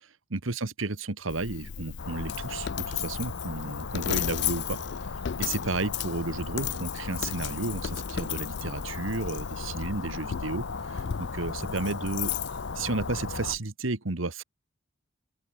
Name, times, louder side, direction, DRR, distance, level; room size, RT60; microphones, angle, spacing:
voice 1, 0.3-4.8 5.4-12.3 12.7-14.4, right 3 dB, 90° right, 1.6 m, -32 dB
Coin (dropping), 1.3-13.6, left 9 dB, 60° left, 0.4 m, -35 dB
sound 1, 2.0-13.6, left 4 dB, 80° left, 0.9 m, -37 dB
open air
head